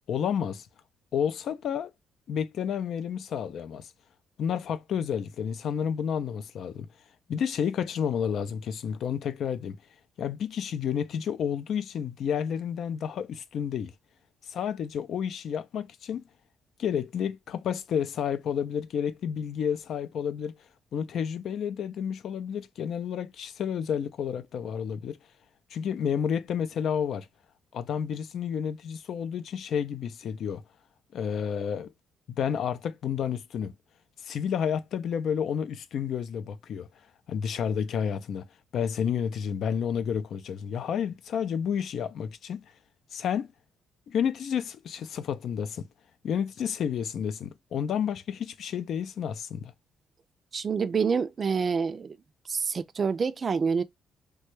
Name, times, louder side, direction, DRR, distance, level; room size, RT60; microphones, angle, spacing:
voice 1, 0.1-0.7 1.1-1.9 2.3-3.9 4.4-6.9 7.3-9.8 10.2-13.9 14.5-16.2 16.8-20.6 20.9-25.2 25.7-27.3 27.7-30.6 31.1-31.9 32.3-33.7 34.2-36.9 37.3-38.5 38.7-42.6 43.1-43.5 44.1-45.8 46.2-49.7, left 8 dB, 70° left, 0.4 m, -30 dB
voice 2, 50.5-52.2 52.5-53.8, right 5 dB, 40° right, 0.3 m, -27 dB
3.1 x 2.2 x 3.0 m
cardioid pair, 90°, 0 cm